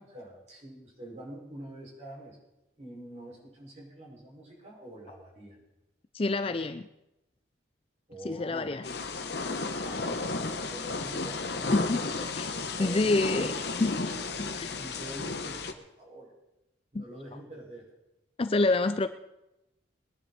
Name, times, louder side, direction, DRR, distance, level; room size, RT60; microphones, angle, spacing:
voice 1, 0.0-2.4 2.8-5.6 8.1-8.8 9.8-11.4 11.9-12.2 12.5-13.6 14.8-16.3 16.9-17.9, right 1 dB, 35° right, -4 dB, 5.9 m, -45 dB
voice 2, 6.1-6.9 8.2-8.9 11.7-12.0 12.4-12.5 12.8-14.0 14.4-14.7 16.9-17.0 18.4-19.1, left 2 dB, 30° left, 11 dB, 0.5 m, -27 dB
Thunder / Rain, 8.8-15.7, left 3 dB, 55° left, 1.1 m, -33 dB
21.0 x 10.5 x 4.3 m, 0.91 s
head